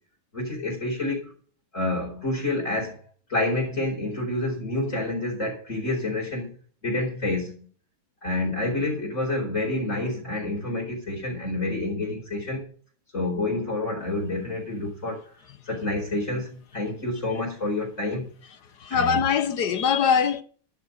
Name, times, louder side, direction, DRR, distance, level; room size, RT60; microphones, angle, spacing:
voice 1, 0.3-1.3 1.7-3.0 3.3-6.5 6.8-7.7 8.2-12.6 13.1-15.2 15.6-18.3 18.9-19.2, left 2 dB, 35° left, 4.9 m, -28 dB
voice 2, 18.8-20.4, left 7 dB, 55° left, 1.5 m, -22 dB
13.0 x 7.4 x 6.3 m
omnidirectional pair, 2.3 m